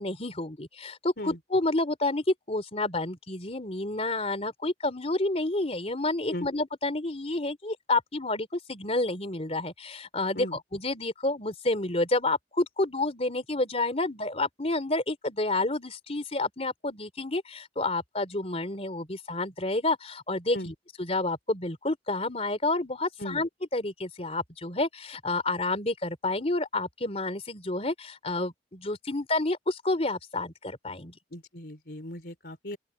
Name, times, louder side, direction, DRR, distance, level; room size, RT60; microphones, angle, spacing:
voice 1, 0.0-31.1, left 2 dB, 35° left, 3.3 m, -29 dB
voice 2, 31.3-32.8, left 1 dB, 60° left, 4.0 m, -37 dB
open air
head